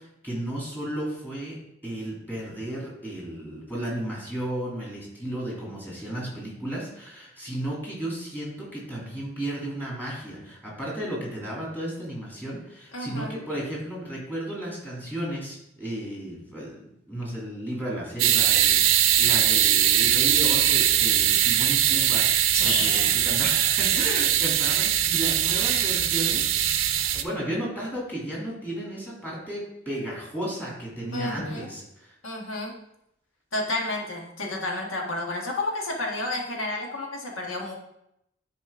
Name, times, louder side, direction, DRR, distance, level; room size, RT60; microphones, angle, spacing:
voice 1, 0.2-1.6 1.8-16.7 17.1-26.8 27.1-32.1, right 1 dB, 10° left, -5 dB, 2.8 m, -34 dB
voice 2, 12.9-13.3 22.5-23.1 31.1-31.7 32.2-32.7 33.5-37.7, left 2 dB, 85° left, 0 dB, 1.5 m, -31 dB
sound 1, 18.2-27.2, right 11 dB, 80° right, 0.5 m, -21 dB
10.0 x 4.3 x 3.7 m, 0.79 s
head